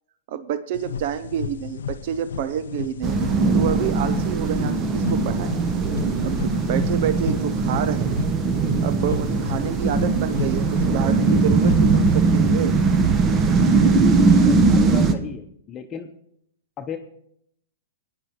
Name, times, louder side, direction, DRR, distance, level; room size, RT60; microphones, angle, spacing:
voice 1, 0.3-3.2 3.5-5.5 6.2-8.1 8.8-12.7, right 9 dB, 55° right, 14 dB, 0.6 m, -28 dB
sound 1, 0.7-12.4, left 7 dB, 70° left, 0.5 m, -33 dB
sound 2, 3.0-15.1, right 4 dB, 30° right, 1.0 m, -20 dB
voice 2, 14.4-16.1 16.8-17.0, left 7 dB, 25° left, 3 dB, 0.9 m, -35 dB
20.5 x 9.8 x 3.1 m, 0.72 s
hypercardioid pair, 110°, 0 cm